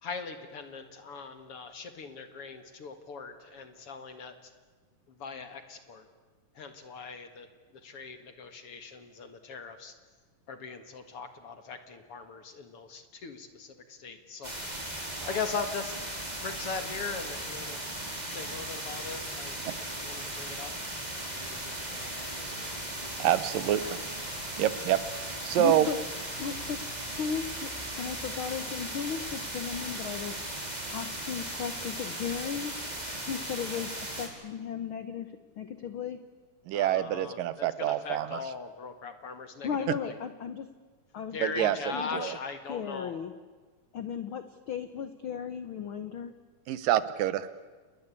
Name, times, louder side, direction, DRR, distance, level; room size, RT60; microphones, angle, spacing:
voice 1, 0.0-4.5 5.1-6.1 6.5-7.5 7.7-9.9 10.5-14.5 15.3-15.9 16.4-17.8 18.3-20.7 21.1-23.3 23.6-24.0 36.7-40.2 41.3-43.2, left 5 dB, 50° left, 9 dB, 2.2 m, -40 dB
sound 1, 14.4-34.3, right 1 dB, 10° right, 4.4 m, -37 dB
voice 2, 23.2-24.0 24.6-25.9 36.7-38.4 41.4-41.8 42.1-42.4 46.7-47.5, right 12 dB, 80° right, 15 dB, 2.7 m, -27 dB
voice 3, 25.5-26.0 26.4-26.8 27.1-27.7 27.9-32.7 33.3-35.3 35.6-36.2 39.6-40.7 41.1-42.3 42.7-43.3 43.9-46.3, left 7 dB, 80° left, 10 dB, 1.1 m, -36 dB
29.0 x 20.5 x 8.4 m, 1.4 s
omnidirectional pair, 3.9 m